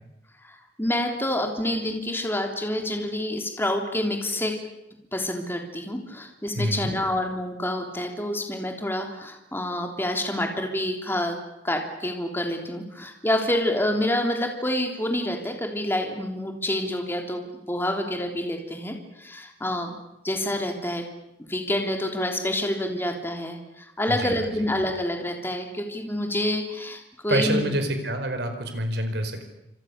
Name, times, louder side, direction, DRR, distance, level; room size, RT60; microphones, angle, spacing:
voice 1, 0.4-4.6 5.1-11.4 11.6-20.0 20.2-21.0 21.5-27.7, left 1 dB, 15° left, 3 dB, 3.4 m, -28 dB
voice 2, 6.6-6.9 24.1-24.5 27.3-29.4, right 1 dB, 70° right, 6 dB, 4.8 m, -27 dB
28.0 x 26.5 x 6.8 m, 0.86 s
head